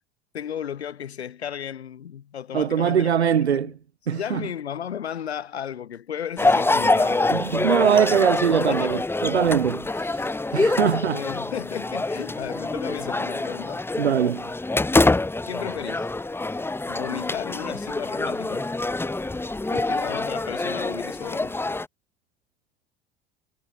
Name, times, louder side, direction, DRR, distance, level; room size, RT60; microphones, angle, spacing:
voice 1, 0.3-3.1 3.5-3.7 4.1-7.5 8.5-9.1 10.5-10.7 11.1-13.8 15.5-16.1 16.9-18.7 19.7-21.6, left 9 dB, 80° left, 4.2 m, -34 dB
voice 2, 2.5-3.7 4.1-4.4 7.3-10.2 10.5-11.2 14.0-14.5, right 8 dB, 85° right, 0.8 m, -22 dB
sound 1, 6.4-21.9, left 2 dB, 5° left, 0.9 m, -25 dB
figure-of-eight pair, 65°, 32 cm